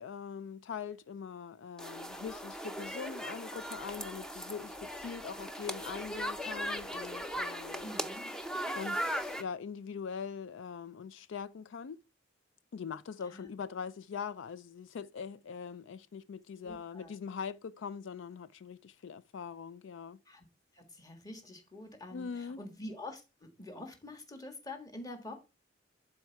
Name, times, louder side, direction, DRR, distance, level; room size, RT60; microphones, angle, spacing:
voice 1, 0.0-7.9 8.7-12.0 12.7-20.2 22.1-22.6, left 6 dB, 75° left, 0.4 m, -42 dB
sound 1, 1.8-9.4, equal, 5° left, 0.5 m, -38 dB
voice 2, 7.8-8.3 13.3-13.5 16.6-17.2 20.2-20.4 20.7-25.3, left 1 dB, 20° left, 1.5 m, -46 dB
12.0 x 4.4 x 4.6 m
head